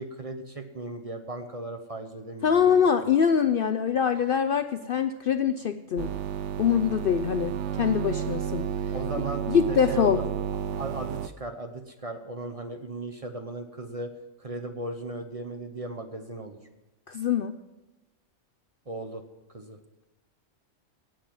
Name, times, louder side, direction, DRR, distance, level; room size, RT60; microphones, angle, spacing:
voice 1, 0.0-2.9 8.9-10.2 10.7-14.1 14.4-16.6 18.9-19.2 19.5-19.8, right 2 dB, 30° right, 7 dB, 0.8 m, -37 dB
voice 2, 2.4-6.1 6.6-8.7 9.5-10.2 17.1-17.5, left 7 dB, 60° left, 10 dB, 0.6 m, -24 dB
sound 1, 6.0-11.3, right 9 dB, 70° right, 0.9 m, -31 dB
17.5 x 7.7 x 6.0 m, 1.0 s
omnidirectional pair, 1.3 m